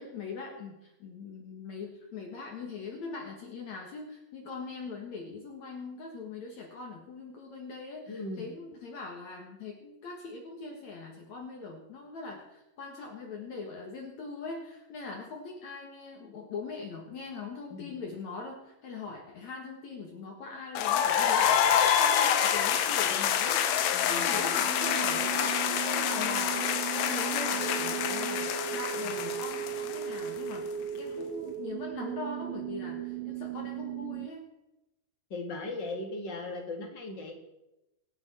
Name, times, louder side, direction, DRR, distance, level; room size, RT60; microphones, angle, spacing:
voice 1, 0.0-23.6 24.1-30.7 31.0-34.5, left 4 dB, 55° left, 1 dB, 2.5 m, -41 dB
voice 2, 8.1-8.5 17.7-17.9 23.9-24.4 29.0-29.3 35.3-37.3, left 2 dB, 35° left, 2 dB, 2.3 m, -38 dB
sound 1, 20.8-30.5, left 9 dB, 90° left, 2.9 m, -27 dB
sound 2, 22.6-34.3, right 10 dB, 75° right, 2.0 m, -37 dB
25.5 x 8.9 x 4.4 m, 0.93 s
omnidirectional pair, 4.3 m